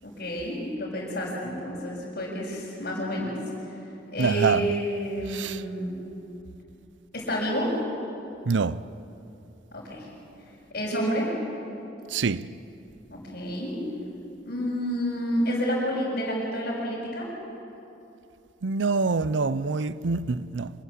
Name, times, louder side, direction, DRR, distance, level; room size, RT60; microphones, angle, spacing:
voice 1, 0.0-3.8 4.1-5.9 7.1-7.8 9.7-10.1 10.7-11.4 13.1-13.8 14.4-17.3, equal, 55° left, 6.2 m, -29 dB
voice 2, 4.2-4.8 5.3-5.6 8.5-8.8 12.1-12.5 18.6-20.7, right 4 dB, 85° right, 0.6 m, -25 dB
26.5 x 19.0 x 8.5 m
head